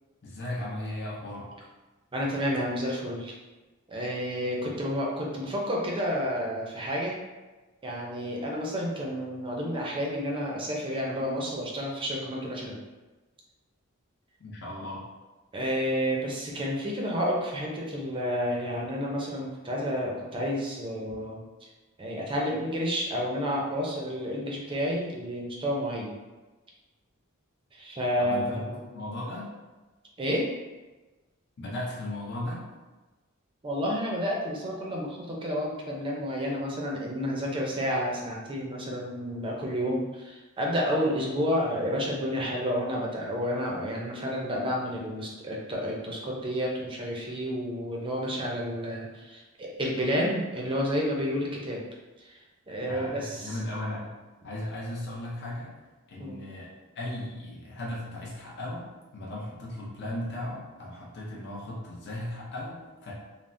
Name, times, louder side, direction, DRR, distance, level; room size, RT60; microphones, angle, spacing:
voice 1, 0.2-1.5 4.6-4.7 14.4-15.0 28.2-29.5 31.6-32.6 52.8-54.1 54.4-55.7 56.1-56.7 56.9-58.9 59.1-63.1, left 1 dB, 55° left, -4 dB, 0.6 m, -36 dB
voice 2, 2.1-3.3 3.9-7.2 7.8-12.8 15.5-21.7 22.0-26.1 27.7-28.3 28.7-28.8 30.2-30.5 33.6-51.8 52.2-52.4 52.7-53.6 56.2-56.4, equal, 25° right, -2 dB, 0.5 m, -30 dB
3.3 x 2.0 x 2.6 m, 1.2 s
head